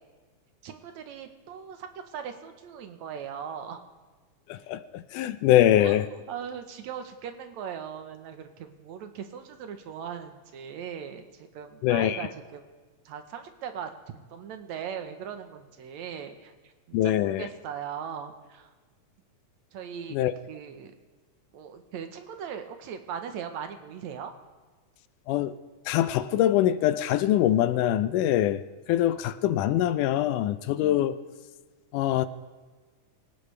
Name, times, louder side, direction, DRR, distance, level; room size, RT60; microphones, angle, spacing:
voice 1, 0.6-3.8 5.8-12.7 13.1-18.7 19.7-20.2 20.5-20.9 21.5-24.3, right 8 dB, 70° right, 7 dB, 2.2 m, -39 dB
voice 2, 4.5-6.1 11.8-12.2 16.9-17.5 20.1-20.3 25.3-25.5 25.9-28.6 28.9-31.2 31.9-32.3, left 12 dB, 85° left, 12 dB, 2.2 m, -23 dB
26.0 x 15.5 x 3.4 m, 1.3 s
omnidirectional pair, 3.6 m